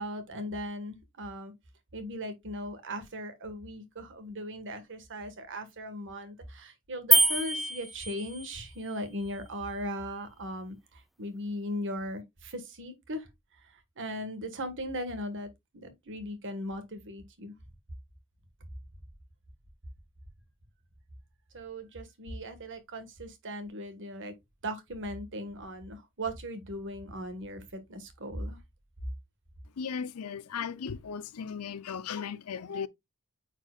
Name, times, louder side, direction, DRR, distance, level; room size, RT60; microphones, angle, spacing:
voice 1, 0.0-1.5 1.9-13.3 13.6-15.5 15.7-17.5 21.5-24.3 24.6-28.6, equal, 60° right, 1.6 m, -38 dB
sound 1, 7.1-8.6, right 1 dB, ahead, 0.4 m, -25 dB
voice 2, 29.8-32.9, left 6 dB, 75° left, 0.6 m, -36 dB
8.8 x 4.6 x 2.4 m
head